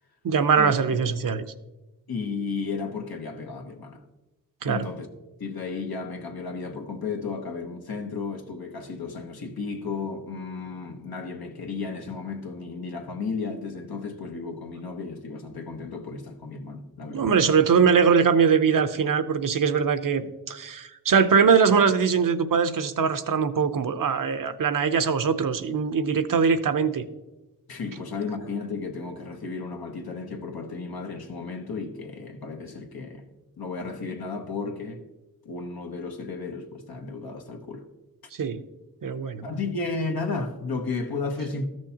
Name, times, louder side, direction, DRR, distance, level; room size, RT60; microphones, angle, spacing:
voice 1, 0.2-1.5 4.6-4.9 17.1-27.0 38.4-38.6 39.0-39.4, right 6 dB, 60° right, 0.7 m, -22 dB
voice 2, 2.1-4.0 4.6-5.1 5.4-17.3 27.7-33.3 33.6-35.0 35.4-37.9 39.4-41.7, left 4 dB, 75° left, 1.1 m, -33 dB
13.0 x 6.3 x 2.9 m
cardioid pair, 50°, 37 cm